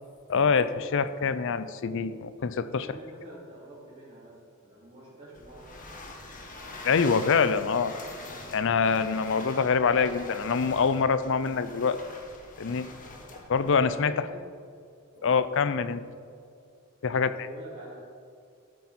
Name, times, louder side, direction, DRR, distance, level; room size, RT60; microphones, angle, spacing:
voice 1, 0.3-2.9 6.8-8.0 8.5-12.0 12.6-12.9 13.5-14.3 15.2-16.0 17.0-17.3, left 5 dB, 60° left, 14 dB, 0.5 m, -25 dB
voice 2, 2.8-5.7 13.2-13.4 13.8-14.4 15.1-15.4 17.1-18.0, right 1 dB, 30° right, -11 dB, 2.8 m, -47 dB
sound 1, 5.3-13.9, left 2 dB, 40° left, 1.4 m, -44 dB
13.0 x 8.0 x 4.2 m, 2.4 s
head